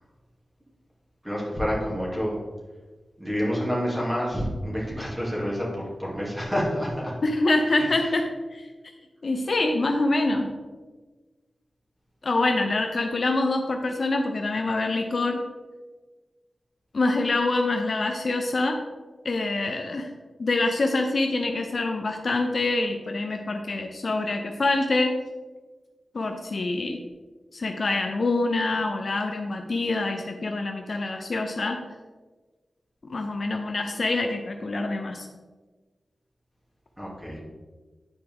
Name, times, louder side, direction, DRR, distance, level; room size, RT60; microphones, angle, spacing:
voice 1, 1.2-2.4 3.2-7.1 7.9-8.0 37.0-37.4, equal, 5° right, -5 dB, 2.3 m, -28 dB
voice 2, 7.2-8.7 9.2-10.5 12.2-15.4 16.9-18.8 19.2-20.1 20.4-25.1 26.1-27.0 27.5-31.8 33.1-35.3, left 2 dB, 55° left, 4 dB, 0.6 m, -25 dB
10.0 x 4.5 x 3.5 m, 1.3 s
wide cardioid pair, 105°, 0 cm